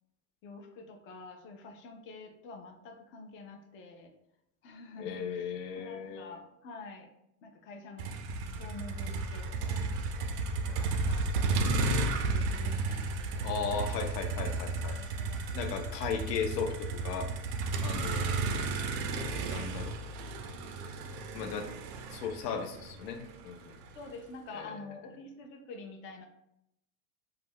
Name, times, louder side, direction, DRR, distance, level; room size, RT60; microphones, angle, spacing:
voice 1, 0.4-4.1 4.6-7.1 7.4-8.1 8.5-10.1 10.7-11.6 12.2-13.5 13.8-13.9 14.7-16.0 18.2-18.3 18.7-19.1 23.9-26.3, left 3 dB, 30° left, 3 dB, 0.3 m, -48 dB
voice 2, 5.0-6.4 13.4-15.0 15.5-17.3 17.8-18.4 19.4-20.0 21.3-21.7 22.1-23.8 24.5-24.8, left 6 dB, 80° left, 6 dB, 0.6 m, -36 dB
Motor vehicle (road), 8.0-24.1, right 3 dB, 70° right, 0.6 m, -33 dB
2.4 x 2.1 x 3.4 m, 0.80 s
supercardioid pair, 115°, 48 cm